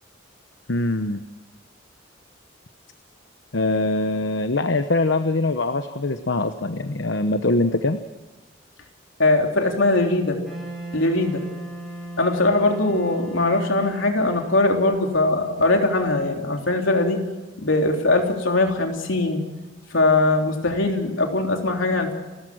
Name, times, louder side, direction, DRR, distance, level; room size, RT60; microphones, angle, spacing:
voice 1, 0.7-1.2 3.5-8.0, left 2 dB, 70° left, 9 dB, 0.9 m, -23 dB
voice 2, 9.2-10.4 10.9-11.4 12.2-17.2 17.6-19.4 19.9-22.1, left 2 dB, 85° left, 3 dB, 3.5 m, -21 dB
Wind instrument woodwind instrument, 10.4-17.4, right 1 dB, ahead, 4.6 m, -38 dB
29.5 x 14.5 x 6.2 m, 1.2 s
head